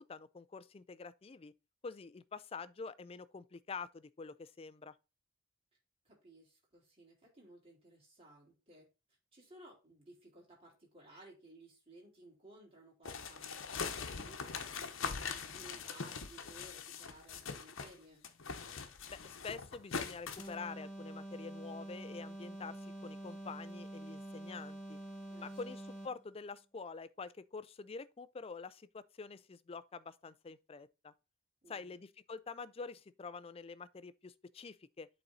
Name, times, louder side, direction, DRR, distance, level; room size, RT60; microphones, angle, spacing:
voice 1, 0.0-1.5 1.8-4.9 19.1-25.0 25.4-31.1 31.7-35.1, left 4 dB, 30° left, 0.4 m, -47 dB
voice 2, 6.0-8.9 9.3-18.3 25.3-25.6 31.6-32.0, right 1 dB, 30° right, 3.7 m, -58 dB
sound 1, 13.0-18.0 18.2-20.5, left 5 dB, 75° left, 1.0 m, -42 dB
sound 2, 20.4-26.3, right 1 dB, 5° left, 1.6 m, -47 dB
8.3 x 4.2 x 3.9 m
head